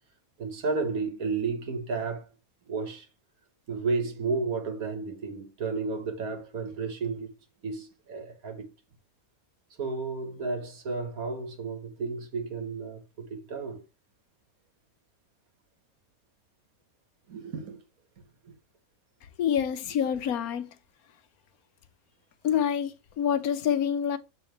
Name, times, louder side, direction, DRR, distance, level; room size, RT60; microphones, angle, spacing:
voice 1, 0.4-2.2 2.7-3.1 3.7-7.3 7.6-8.7 9.8-13.8 17.3-17.8 18.4-18.5, right 4 dB, 80° right, 1.9 m, -32 dB
voice 2, 19.4-20.7 22.4-24.2, left 8 dB, 85° left, 1.3 m, -27 dB
7.1 x 4.0 x 4.5 m
omnidirectional pair, 1.5 m